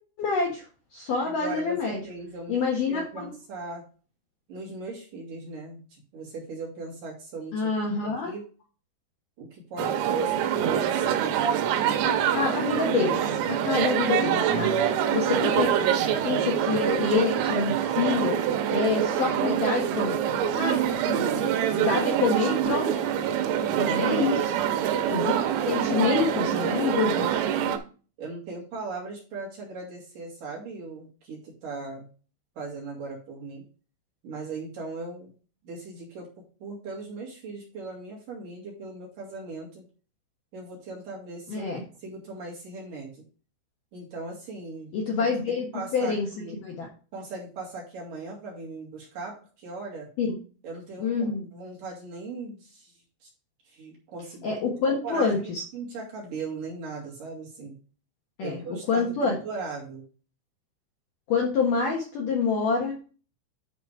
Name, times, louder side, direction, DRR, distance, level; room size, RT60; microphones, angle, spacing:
voice 1, 0.2-0.7 0.9-2.0 2.5-3.3 7.5-8.3 12.1-14.7 15.1-15.7 16.2-18.4 18.7-20.2 20.5-20.8 21.0-21.4 21.7-22.9 23.6-24.5 25.1-25.4 25.7-27.3 41.5-41.8 44.9-46.3 46.6-46.9 50.2-50.3 51.0-51.5 54.4-55.6 58.4-58.6 58.9-59.4 61.3-63.0, left 4 dB, 65° left, -2 dB, 2.2 m, -27 dB
voice 2, 1.2-2.6 2.9-3.9 4.5-7.7 8.0-8.4 9.4-12.1 23.8-24.4 25.8-26.2 28.2-32.1 32.6-33.7 34.2-35.3 35.6-39.8 40.5-41.7 42.0-43.2 43.9-44.9 45.2-46.6 47.1-50.1 50.6-52.9 53.2-53.3 53.7-54.5 55.0-57.8 58.4-60.0, right 3 dB, 50° right, -3 dB, 3.3 m, -39 dB
sound 1, 9.8-27.8, right 9 dB, 90° right, 3.6 m, -25 dB
10.0 x 4.2 x 4.9 m, 0.37 s
omnidirectional pair, 5.8 m